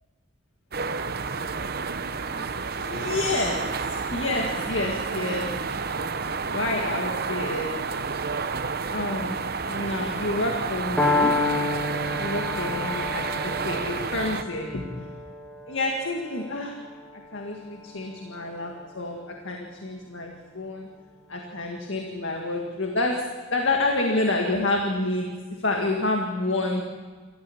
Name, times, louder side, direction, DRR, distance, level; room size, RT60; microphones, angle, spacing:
sound 1, 0.7-14.4, right 4 dB, 50° right, 0.9 m, -30 dB
voice 1, 2.7-5.5 6.5-7.9 8.9-9.4 9.7-11.4 12.2-15.1 15.7-16.8 17.3-20.9 21.3-25.3 25.6-26.8, left 2 dB, 70° left, 1 dB, 2.0 m, -28 dB
Piano, 11.0-18.9, left 2 dB, 5° left, 2.3 m, -30 dB
27.5 x 14.0 x 7.2 m, 1.5 s
head